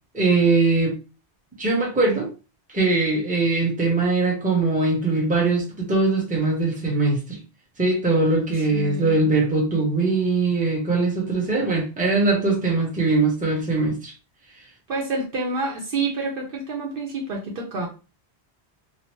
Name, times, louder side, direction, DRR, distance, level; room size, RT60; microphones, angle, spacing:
voice 1, 0.1-0.9 1.6-2.3 2.7-7.4 7.8-14.1, right 3 dB, 10° right, -1 dB, 0.7 m, -21 dB
voice 2, 8.7-9.2 14.9-17.9, right 3 dB, 60° right, -1 dB, 0.8 m, -28 dB
2.8 x 2.0 x 3.0 m, 0.32 s
omnidirectional pair, 1.1 m